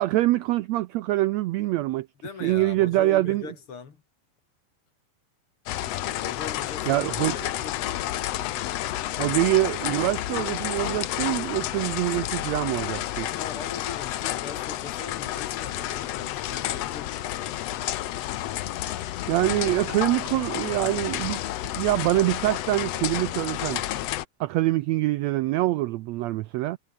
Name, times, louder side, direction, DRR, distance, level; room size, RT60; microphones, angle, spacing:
voice 1, 0.0-2.1 2.4-3.4 6.9-7.3 9.2-13.3 19.3-21.4 21.7-23.8 24.4-26.8, right 17 dB, 90° right, 1.5 m, -24 dB
voice 2, 2.2-4.0 6.2-8.2 13.3-17.9, left 5 dB, 45° left, 3.0 m, -41 dB
sound 1, 5.7-24.2, left 14 dB, 65° left, 1.7 m, -30 dB
omnidirectional pair, 3.8 m